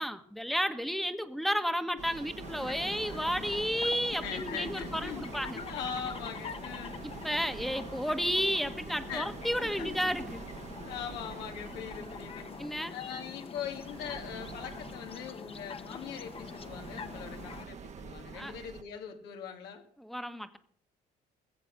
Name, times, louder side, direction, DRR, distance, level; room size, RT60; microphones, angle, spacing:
voice 1, 0.0-5.6 7.2-10.5 12.6-12.9 18.3-18.5 20.0-20.6, equal, ahead, 9 dB, 1.3 m, -32 dB
sound 1, 2.0-18.8, right 6 dB, 45° right, 1.2 m, -46 dB
sound 2, 2.4-17.6, left 5 dB, 35° left, 1.1 m, -45 dB
voice 2, 4.1-5.2 5.5-7.0 9.1-9.3 9.6-9.9 10.8-12.5 12.9-19.8, left 8 dB, 90° left, 3 dB, 2.5 m, -41 dB
20.0 x 7.6 x 6.6 m, 0.63 s
cardioid pair, 110°, 17 cm